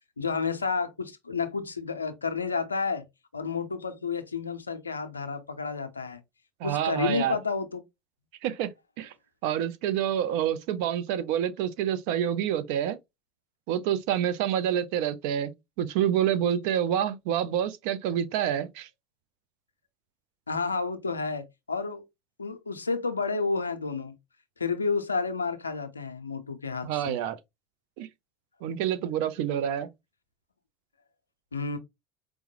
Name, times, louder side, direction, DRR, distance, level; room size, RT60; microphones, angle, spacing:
voice 1, 0.2-3.1 3.3-6.2 6.6-7.8 20.5-22.0 22.4-24.2 24.6-27.2 31.5-31.8, left 4 dB, 90° left, 0.5 m, -30 dB
voice 2, 6.6-7.4 8.4-8.7 9.0-9.1 9.4-13.0 13.7-15.5 15.8-18.9 26.8-27.4 28.0-28.1 28.6-29.9, right 10 dB, 60° right, 0.5 m, -27 dB
4.6 x 2.1 x 2.8 m
figure-of-eight pair, 70°, 0 cm